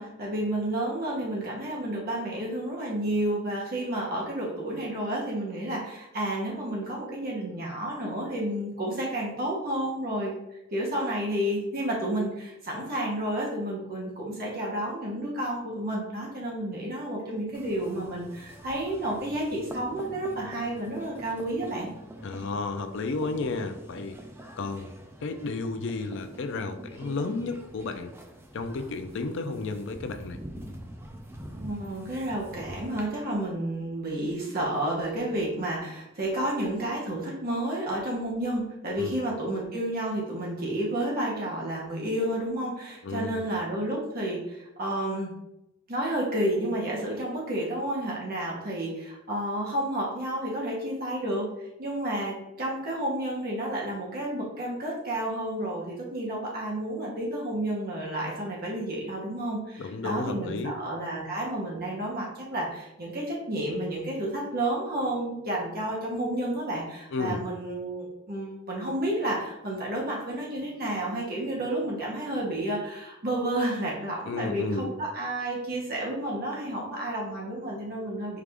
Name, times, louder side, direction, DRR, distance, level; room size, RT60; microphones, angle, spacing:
voice 1, 0.0-10.3 10.7-21.9 31.5-45.3 45.9-51.5 51.8-78.4, right 1 dB, 45° right, -4 dB, 0.9 m, -31 dB
sound 1, 17.5-33.0, right 1 dB, 10° right, 0.4 m, -45 dB
voice 2, 22.2-24.2 24.6-24.9 25.2-28.1 28.5-30.4 39.0-39.2 43.0-43.4 59.8-60.7 67.1-67.4 74.3-74.9, left 3 dB, 60° left, 8 dB, 0.4 m, -32 dB
4.7 x 2.5 x 3.4 m, 0.89 s
head